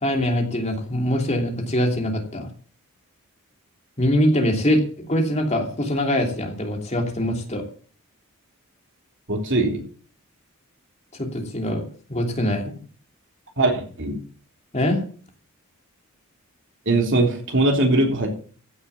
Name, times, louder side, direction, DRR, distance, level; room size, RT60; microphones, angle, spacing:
voice 1, 0.0-2.5 4.0-4.8 5.1-7.6 11.2-11.8 12.1-12.6 14.7-15.0, equal, 30° left, 2 dB, 2.9 m, -23 dB
voice 2, 9.3-9.8 13.6-14.2 16.8-18.3, right 2 dB, 55° right, 2 dB, 3.4 m, -21 dB
15.5 x 7.2 x 7.1 m, 0.43 s
head